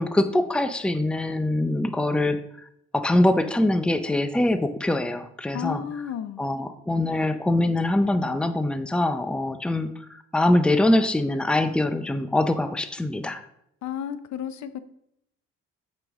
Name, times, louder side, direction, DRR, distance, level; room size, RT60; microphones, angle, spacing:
voice 1, 0.0-2.7 2.9-5.8 6.4-13.4, left 1 dB, 5° left, 10 dB, 0.6 m, -23 dB
voice 2, 5.5-6.4 13.8-14.8, left 9 dB, 70° left, 13 dB, 0.7 m, -32 dB
8.9 x 5.3 x 3.6 m, 0.75 s
cardioid pair, 90°, 30 cm